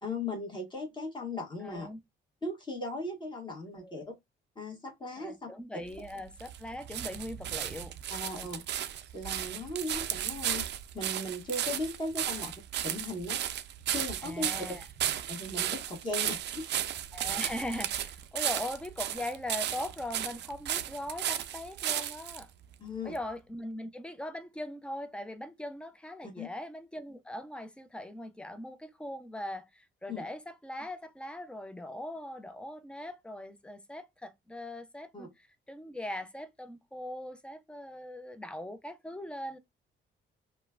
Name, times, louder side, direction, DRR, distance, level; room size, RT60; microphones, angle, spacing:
voice 1, 0.0-1.9 2.4-4.0 4.5-5.5 8.1-8.6 9.1-10.6 10.9-12.5 12.8-13.4 13.9-14.5 15.3-16.7 22.8-23.2 26.2-26.5 30.1-30.2 35.1-35.3, left 2 dB, 25° left, 1.4 m, -37 dB
voice 2, 1.6-2.0 3.8-4.0 5.1-7.9 8.3-8.6 12.4-12.5 14.2-14.9 17.1-22.5 23.0-39.6, left 1 dB, 5° left, 0.4 m, -40 dB
sound 1, 5.9-22.4 23.1-23.2, right 11 dB, 60° right, 0.4 m, -34 dB
3.0 x 2.2 x 2.3 m
cardioid pair, 90°, 20 cm